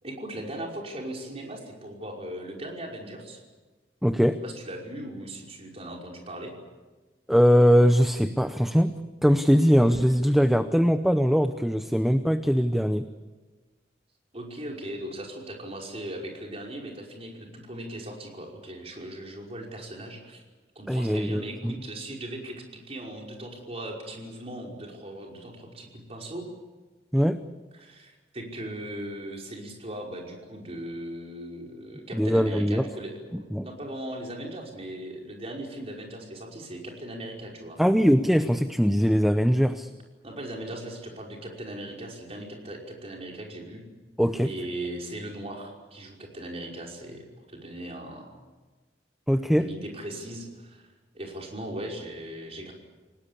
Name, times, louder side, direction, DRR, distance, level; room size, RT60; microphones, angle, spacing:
voice 1, 0.0-3.4 4.4-6.5 14.3-20.4 20.8-26.5 27.8-37.8 40.2-43.8 44.4-48.3 49.5-50.9 51.1-52.7, right 1 dB, 35° right, 0 dB, 5.4 m, -38 dB
voice 2, 4.0-4.4 7.3-8.9 9.2-13.1 20.9-21.7 27.1-27.4 32.1-32.9 33.3-33.6 37.8-39.9 44.2-44.5 49.3-49.7, equal, ahead, 9 dB, 0.7 m, -21 dB
28.5 x 18.5 x 8.5 m, 1.3 s
head